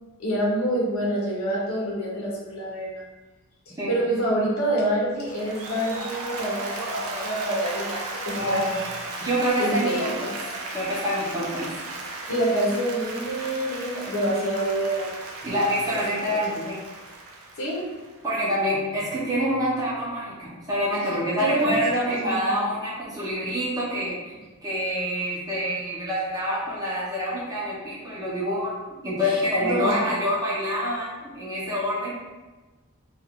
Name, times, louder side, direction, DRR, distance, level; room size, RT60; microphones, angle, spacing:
voice 1, 0.2-3.0 3.9-8.0 8.2-8.8 9.6-10.1 12.3-15.1 15.9-16.0 16.3-16.6 17.6-17.8 21.4-22.6 29.2-29.9, right 1 dB, 65° left, -4 dB, 0.8 m, -26 dB
Applause, 5.2-18.4, right 2 dB, 75° right, 0.5 m, -35 dB
voice 2, 9.2-10.3 10.7-11.8 15.4-16.8 18.2-24.2 24.6-28.7 29.0-32.1, equal, 15° right, -8 dB, 0.8 m, -26 dB
2.5 x 2.4 x 3.6 m, 1.2 s
head